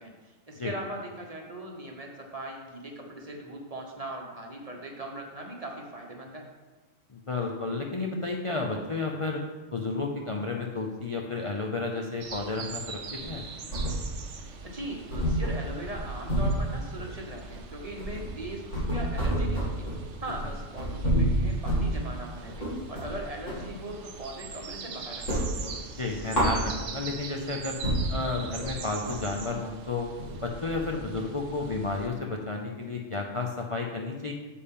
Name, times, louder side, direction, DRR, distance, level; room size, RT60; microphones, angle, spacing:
voice 1, 0.0-6.5 14.6-19.9 20.2-25.4, right 1 dB, 30° right, 1 dB, 1.0 m, -39 dB
voice 2, 7.1-9.4 9.7-13.0 13.3-13.4 26.0-27.8 28.1-30.1 30.4-34.3, left 3 dB, 35° left, 0 dB, 0.6 m, -32 dB
sound 1, 12.2-32.1, right 5 dB, 65° right, 1.1 m, -42 dB
sound 2, 13.2-14.4 14.7-14.8 15.1-23.7 24.1-24.8 25.1-27.1 27.5-27.6 27.8-32.0, right 1 dB, 70° left, 3.2 m, -30 dB
8.4 x 7.0 x 3.7 m, 1.2 s
omnidirectional pair, 1.3 m